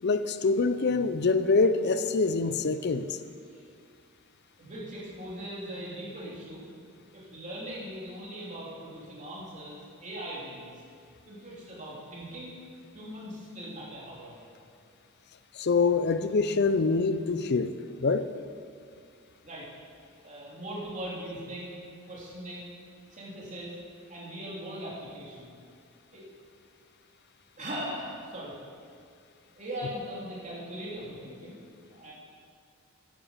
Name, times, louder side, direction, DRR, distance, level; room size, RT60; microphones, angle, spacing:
voice 1, 0.0-3.2 15.6-17.7 18.0-18.3, left 4 dB, 50° left, 12 dB, 0.5 m, -25 dB
voice 2, 4.6-6.6 7.1-10.7 11.3-12.6 12.9-14.5 19.4-19.7 20.2-21.7 22.1-22.7 23.1-23.7 24.1-25.6 26.1-26.2 27.6-28.5 29.6-31.6 31.9-32.1, equal, 35° right, -5 dB, 3.1 m, -40 dB
10.0 x 9.0 x 7.3 m, 2.3 s
head